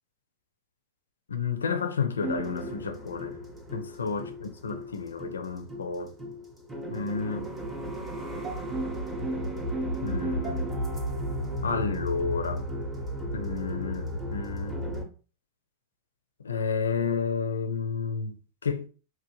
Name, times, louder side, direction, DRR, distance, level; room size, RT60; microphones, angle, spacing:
voice 1, 1.3-3.4 3.7-6.1 6.9-7.5 10.0-10.8 11.6-12.6 13.3-14.8 16.4-18.4 18.6-18.9, left 5 dB, 70° left, 0.4 m, -31 dB
sound 1, 2.2-15.0, equal, 10° right, 0.7 m, -34 dB
3.0 x 2.1 x 2.8 m
figure-of-eight pair, 90°, 0 cm